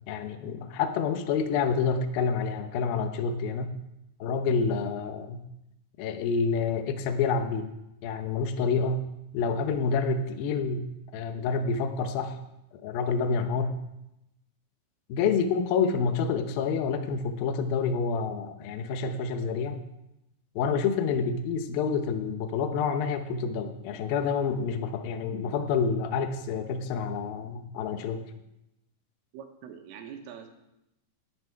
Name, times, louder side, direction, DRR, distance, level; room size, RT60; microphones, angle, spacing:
voice 1, 0.1-3.7 4.2-5.4 6.0-7.7 8.0-9.0 9.3-10.9 11.1-12.4 12.8-13.7 15.1-19.8 20.6-28.2, left 5 dB, 85° left, 7 dB, 2.1 m, -28 dB
voice 2, 29.3-30.5, right 8 dB, 85° right, 4 dB, 3.9 m, -43 dB
17.5 x 10.5 x 4.6 m, 0.88 s
omnidirectional pair, 5.8 m